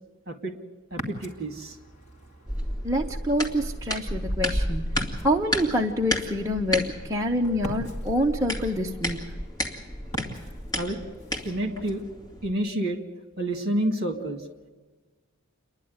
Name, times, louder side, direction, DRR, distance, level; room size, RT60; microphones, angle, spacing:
Ocean, 0.9-12.0, equal, 35° left, 2.6 m, -43 dB
voice 1, 0.9-1.8 10.8-11.0 11.4-12.0 12.4-13.0 13.4-14.4, right 1 dB, 45° right, 6 dB, 2.3 m, -29 dB
sound 1, 2.5-12.5, equal, 15° left, 2.1 m, -32 dB
voice 2, 2.8-4.9 5.2-9.3, equal, 15° right, 0 dB, 0.8 m, -26 dB
29.0 x 11.0 x 9.6 m, 1.3 s
head